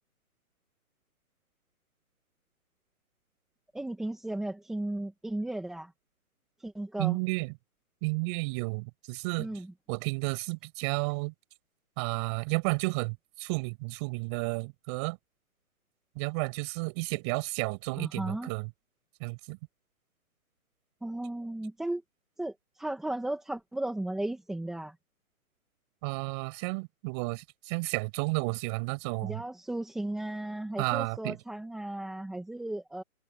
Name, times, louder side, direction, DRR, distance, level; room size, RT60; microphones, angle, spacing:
voice 1, 3.7-5.9 6.6-7.2 9.4-9.7 18.0-18.5 21.0-22.0 22.4-24.9 29.2-33.0, right 1 dB, ahead, 1.5 m, -35 dB
voice 2, 7.0-7.5 8.0-9.5 9.9-11.3 12.0-15.2 16.2-18.7 19.2-19.6 26.0-29.4 30.8-31.4, right 30 dB, 20° right, 7.6 m, -32 dB
hypercardioid pair, 170°, 44 cm